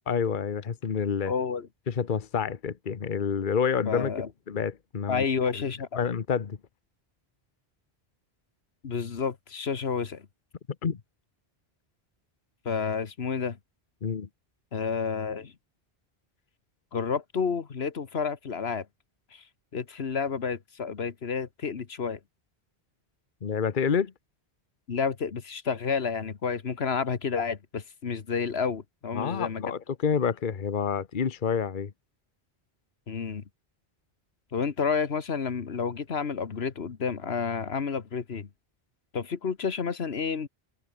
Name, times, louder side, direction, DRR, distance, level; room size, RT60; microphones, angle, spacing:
voice 1, 0.1-1.3 1.9-4.1 4.5-5.2 6.0-6.6 10.8-11.0 14.0-14.3 23.4-24.1 29.1-31.9, left 6 dB, 55° left, 1.2 m, -28 dB
voice 2, 1.3-1.7 3.9-4.3 5.1-6.0 8.8-10.3 12.6-13.6 14.7-15.5 16.9-18.9 19.3-19.4 19.7-22.2 24.9-29.6 33.1-33.4 34.5-38.5 39.1-40.5, left 5 dB, 80° left, 1.6 m, -30 dB
omnidirectional pair, 1.1 m